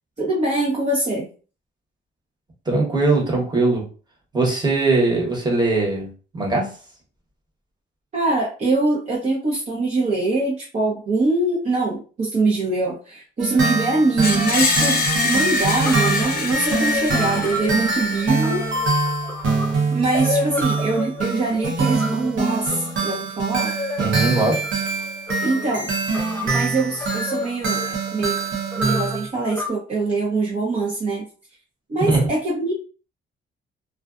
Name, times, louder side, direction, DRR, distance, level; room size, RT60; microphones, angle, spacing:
voice 1, 0.2-1.3 8.1-18.6 19.9-23.7 25.4-25.9 26.4-28.4 28.8-31.3 31.9-32.7, right 3 dB, 35° right, -5 dB, 0.8 m, -23 dB
voice 2, 2.7-3.8 4.3-6.7 24.0-24.6 32.1-32.3, right 2 dB, 20° right, -2 dB, 1.2 m, -20 dB
sound 1, 13.4-29.3, right 3 dB, 80° right, 0.9 m, -24 dB
Screech, 14.2-19.2, left 3 dB, 50° left, 0.7 m, -25 dB
sound 2, 15.8-29.7, left 2 dB, 10° left, 0.5 m, -31 dB
2.4 x 2.3 x 2.4 m, 0.37 s
cardioid pair, 90°, 20 cm